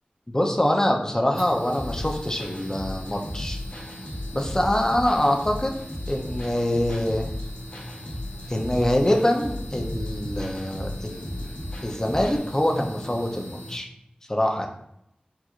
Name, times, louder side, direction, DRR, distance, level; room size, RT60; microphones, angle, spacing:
voice 1, 0.3-3.6 4.3-5.7 6.1-7.3 8.5-11.5 11.8-13.9 14.3-14.7, left 1 dB, 20° left, 2 dB, 0.5 m, -24 dB
sound 1, 1.3-13.8, left 1 dB, 85° right, 1.5 m, -40 dB
sound 2, 1.7-12.4, left 1 dB, 55° left, 1.1 m, -35 dB
4.3 x 2.4 x 2.4 m, 0.76 s
wide cardioid pair, 55°, 3 cm